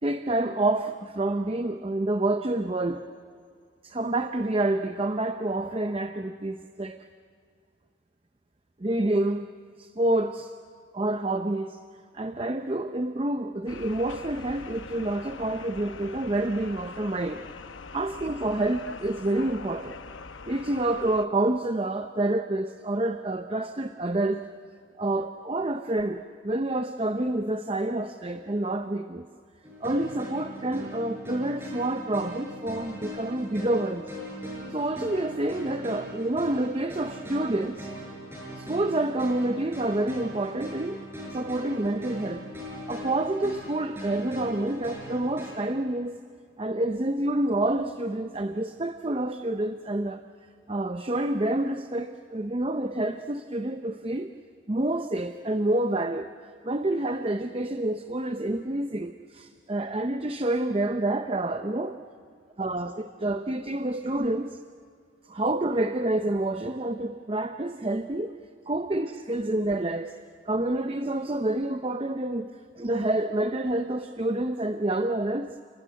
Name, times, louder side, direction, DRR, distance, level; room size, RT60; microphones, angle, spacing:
voice 1, 0.0-3.0 3.8-7.0 8.8-9.5 9.8-10.5 10.9-11.8 12.1-17.5 17.9-20.0 20.5-24.5 25.0-29.3 29.8-34.1 34.7-37.9 38.6-41.0 41.3-42.5 42.9-46.2 46.6-50.2 50.7-54.3 54.7-61.9 62.6-64.6 65.3-68.4 68.7-70.2 70.5-75.5, right 1 dB, 30° right, 8 dB, 0.6 m, -28 dB
sound 1, 13.7-21.3, left 4 dB, 75° left, 0.9 m, -43 dB
sound 2, 29.6-45.5, equal, 10° right, 6.7 m, -40 dB
30.0 x 19.0 x 9.3 m, 2.3 s
head